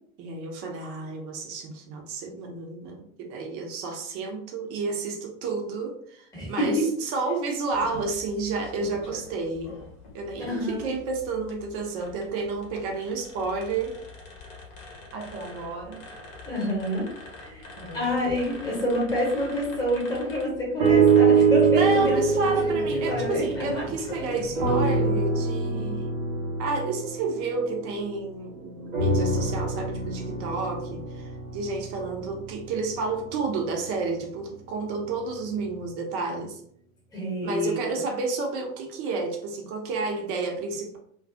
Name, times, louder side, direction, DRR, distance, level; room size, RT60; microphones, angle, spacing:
voice 1, 0.2-9.8 10.1-14.0 15.1-16.0 17.8-18.2 21.7-26.1 26.6-36.6 37.4-41.0, right 3 dB, 35° right, 2 dB, 0.6 m, -31 dB
voice 2, 6.3-6.9 10.4-10.9 16.5-17.1 17.4-17.7 17.9-22.8 23.1-23.6 37.1-37.9, equal, 10° left, -4 dB, 1.0 m, -28 dB
sound 1, 7.7-25.0, left 2 dB, 45° left, 0.9 m, -42 dB
sound 2, 20.8-24.1 24.5-28.3 28.9-33.1 33.8-33.9, right 4 dB, 80° right, 0.7 m, -24 dB
2.3 x 2.1 x 2.5 m, 0.66 s
figure-of-eight pair, 85°, 41 cm